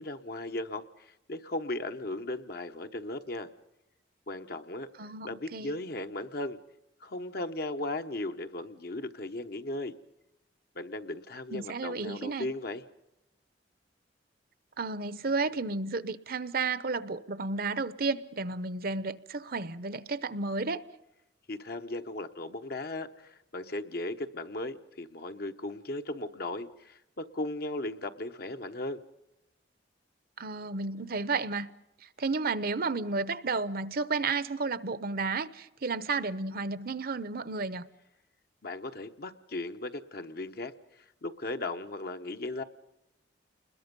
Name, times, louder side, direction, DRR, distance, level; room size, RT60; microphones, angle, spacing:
voice 1, 0.0-3.5 4.3-4.9 5.2-6.6 7.0-9.9 10.8-12.8 21.5-29.0 38.6-40.7 41.2-42.6, left 2 dB, 55° left, 1.1 m, -37 dB
voice 2, 5.0-5.7 11.5-12.5 14.8-20.8 30.4-31.7 32.2-37.9, right 4 dB, 55° right, 0.8 m, -32 dB
29.0 x 21.5 x 5.4 m
head